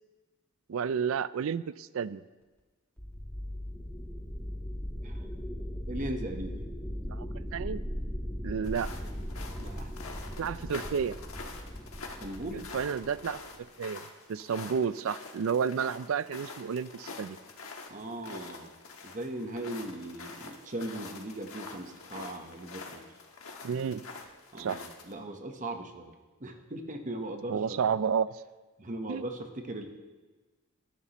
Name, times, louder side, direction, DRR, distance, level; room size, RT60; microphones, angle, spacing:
voice 1, 0.7-2.2 7.1-7.3 7.5-7.8 8.4-8.9 10.4-11.2 12.5-13.4 13.8-14.0 14.3-17.4 23.6-24.0 24.6-24.8 27.5-28.4 29.1-29.2, right 6 dB, 65° right, 17 dB, 0.4 m, -31 dB
sound 1, 3.0-13.6, equal, 5° left, 1.1 m, -38 dB
voice 2, 5.9-6.6 9.6-9.9 12.2-12.7 17.9-18.7 19.0-23.0 24.5-26.1 26.4-27.9 28.8-29.9, right 1 dB, 35° right, 5 dB, 1.0 m, -39 dB
sound 2, 8.6-25.1, left 3 dB, 70° left, 1.4 m, -46 dB
19.0 x 11.0 x 3.0 m, 1.2 s
head